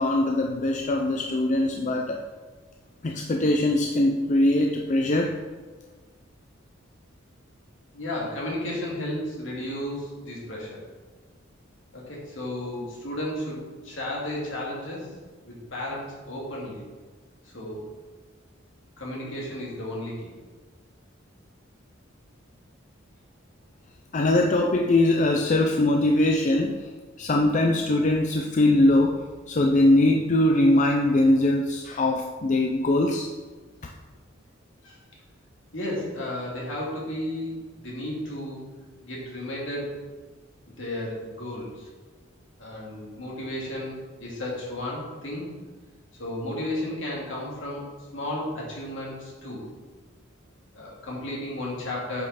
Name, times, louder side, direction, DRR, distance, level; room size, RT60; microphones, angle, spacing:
voice 1, 0.0-2.2 3.0-5.4 24.1-26.9 27.2-33.3, left 1 dB, 40° left, 2 dB, 0.5 m, -22 dB
voice 2, 7.9-10.9 11.9-15.1 15.5-16.8 17.5-17.8 19.0-20.3 34.8-35.0 35.7-38.6 39.0-39.9 40.8-41.9 42.6-43.9 44.2-45.5 46.2-49.6 50.7-52.2, left 1 dB, 65° left, -4 dB, 2.5 m, -33 dB
8.1 x 5.5 x 4.1 m, 1.3 s
head